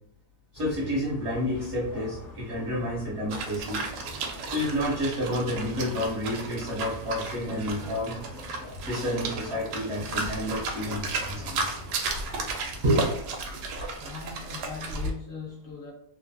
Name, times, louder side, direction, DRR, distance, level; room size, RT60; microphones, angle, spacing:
sound 1, 0.5-13.1, equal, 65° left, 0.4 m, -45 dB
voice 1, 0.5-3.8 4.5-8.2 8.8-11.7 12.8-13.1 13.5-13.6, equal, 55° right, 0.8 m, -29 dB
sound 2, 3.3-15.1, right 3 dB, 90° right, 1.2 m, -34 dB
voice 2, 13.5-15.9, left 5 dB, 45° left, 1.3 m, -41 dB
3.0 x 2.2 x 2.6 m
omnidirectional pair, 1.7 m